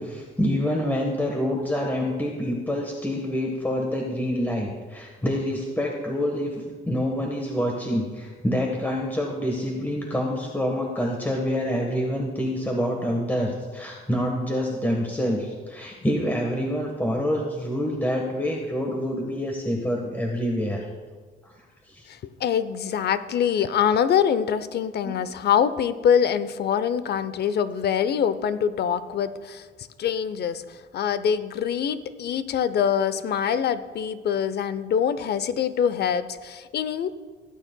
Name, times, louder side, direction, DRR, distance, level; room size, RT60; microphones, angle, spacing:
voice 1, 0.0-20.8 21.9-22.1 25.0-25.2, equal, 10° left, 0 dB, 1.3 m, -27 dB
voice 2, 22.1-29.7 30.0-37.1, left 8 dB, 55° left, 14 dB, 0.6 m, -24 dB
16.5 x 9.1 x 2.2 m, 1.5 s
cardioid pair, 90°, 20 cm